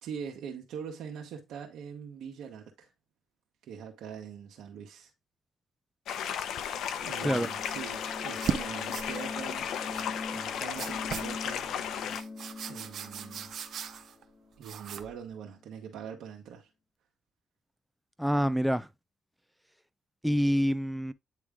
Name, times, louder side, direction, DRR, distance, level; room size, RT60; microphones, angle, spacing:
voice 1, 0.0-2.9 3.6-5.1 7.0-9.7 10.3-11.7 12.7-13.5 14.6-16.7, right 7 dB, 80° right, 1.4 m, -43 dB
sound 1, 6.1-12.2, left 8 dB, 75° left, 0.7 m, -35 dB
sound 2, 7.0-15.5, left 3 dB, 30° left, 1.0 m, -43 dB
voice 2, 7.2-7.5 18.2-18.9 20.2-21.1, equal, ahead, 0.7 m, -26 dB
sound 3, 7.4-7.8 8.2-8.6 8.9-9.1 9.9-10.1 10.8-11.3 12.1-14.2 14.6-15.2, right 8 dB, 65° right, 0.8 m, -37 dB
9.5 x 3.2 x 3.6 m
cardioid pair, 90°, 0 cm